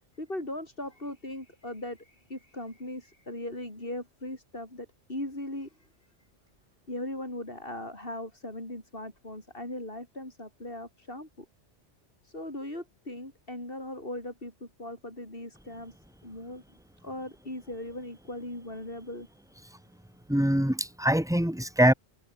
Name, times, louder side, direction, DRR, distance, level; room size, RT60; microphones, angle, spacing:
voice 1, 0.1-5.8 6.9-11.5 12.2-16.0 16.2-16.6 17.0-19.3, left 1 dB, 50° left, 7.2 m, -39 dB
voice 2, 20.3-21.9, equal, 5° right, 2.4 m, -23 dB
omnidirectional pair, 1.2 m